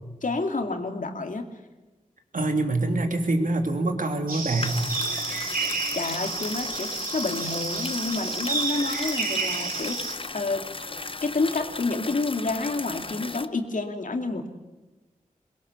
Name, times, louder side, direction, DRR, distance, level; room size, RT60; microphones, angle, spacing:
voice 1, 0.2-1.5 5.9-10.7 11.2-14.5, left 3 dB, 65° left, 5 dB, 2.5 m, -29 dB
voice 2, 2.3-4.8, right 2 dB, 70° right, 4 dB, 2.8 m, -25 dB
sound 1, 4.3-10.2, right 4 dB, 90° right, 3.3 m, -30 dB
sound 2, 4.6-13.5, left 3 dB, 40° left, 0.9 m, -36 dB
22.5 x 21.5 x 7.0 m, 1.2 s
cardioid pair, 55°, 14 cm